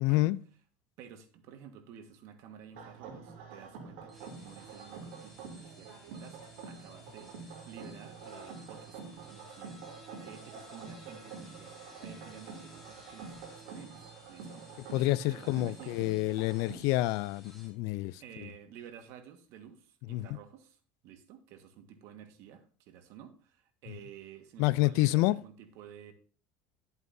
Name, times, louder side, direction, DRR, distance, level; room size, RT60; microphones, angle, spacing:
voice 1, 0.0-0.4 14.9-18.2 20.1-20.3 24.6-25.4, left 19 dB, 70° left, 0.4 m, -28 dB
voice 2, 1.0-6.4 6.7-16.0 18.2-20.8 21.0-26.1, right 8 dB, 65° right, 1.5 m, -52 dB
sound 1, 2.7-16.7, right 5 dB, 80° right, 2.9 m, -47 dB
sound 2, 4.0-17.7, equal, ahead, 3.2 m, -57 dB
11.5 x 8.0 x 2.7 m
supercardioid pair, 120°, 5 cm